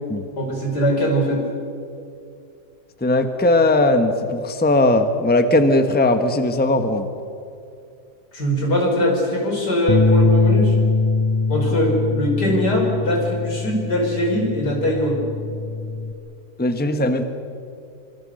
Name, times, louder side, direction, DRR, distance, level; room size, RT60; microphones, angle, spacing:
voice 1, 0.4-1.5 8.3-10.7 11.5-15.2, equal, 85° left, 0 dB, 5.8 m, -21 dB
voice 2, 3.0-7.1 16.6-17.2, left 2 dB, 5° left, 7 dB, 1.2 m, -18 dB
Bass guitar, 9.9-16.1, left 3 dB, 25° left, 0.7 m, -22 dB
25.5 x 25.0 x 6.6 m, 2.5 s
omnidirectional pair, 1.7 m